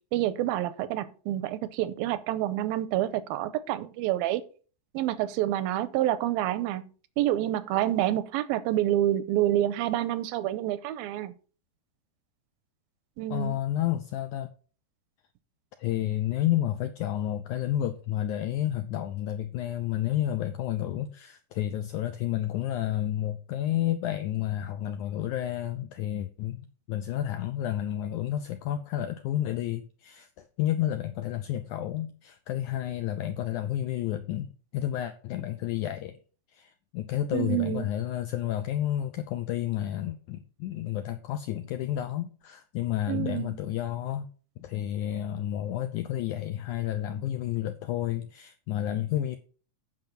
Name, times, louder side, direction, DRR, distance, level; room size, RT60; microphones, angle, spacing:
voice 1, 0.1-4.4 4.9-6.8 7.2-11.3 13.2-13.6 37.3-37.9 43.1-43.6, right 13 dB, 85° right, 2.4 m, -28 dB
voice 2, 13.3-14.5 15.8-36.2 36.5-44.3 44.6-49.4, left 12 dB, 90° left, 1.7 m, -31 dB
9.0 x 5.5 x 5.8 m
omnidirectional pair, 4.2 m